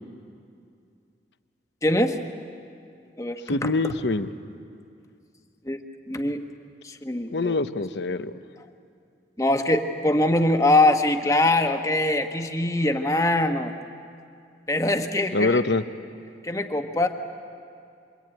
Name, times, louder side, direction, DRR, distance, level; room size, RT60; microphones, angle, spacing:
voice 1, 1.8-2.2 3.2-3.7 5.6-5.8 6.1-6.4 6.8-7.5 9.4-13.7 14.7-15.6 16.4-17.1, left 1 dB, 20° left, 5 dB, 1.2 m, -23 dB
voice 2, 3.5-4.3 7.3-8.3 15.3-15.8, left 2 dB, 70° left, 11 dB, 0.8 m, -24 dB
26.5 x 23.0 x 9.1 m, 2.4 s
head